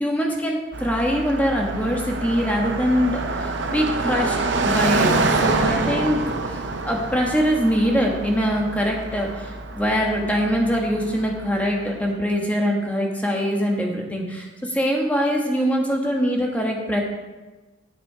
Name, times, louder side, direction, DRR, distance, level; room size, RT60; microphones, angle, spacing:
voice 1, 0.0-5.1 5.4-6.2 6.5-17.0, equal, 5° left, 0 dB, 1.2 m, -23 dB
Car passing by, 0.7-11.8, right 3 dB, 60° right, 0.7 m, -26 dB
10.0 x 6.2 x 4.9 m, 1.2 s
head